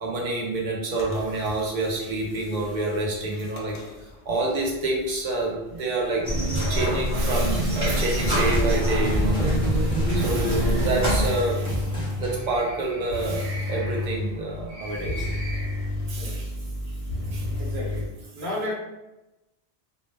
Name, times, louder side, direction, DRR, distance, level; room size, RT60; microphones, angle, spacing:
voice 1, 0.0-6.3 6.7-16.5 17.3-17.5, right 2 dB, 55° right, -1 dB, 0.6 m, -28 dB
sound 1, 0.9-18.1, left 2 dB, 55° left, 0.6 m, -34 dB
sound 2, 6.2-11.3, equal, 20° right, 0.8 m, -24 dB
sound 3, 7.9-13.3, equal, 5° left, 0.5 m, -31 dB
voice 2, 17.6-18.1 18.3-18.7, left 1 dB, 80° right, -3 dB, 1.0 m, -32 dB
2.1 x 2.0 x 3.2 m, 0.99 s
omnidirectional pair, 1.1 m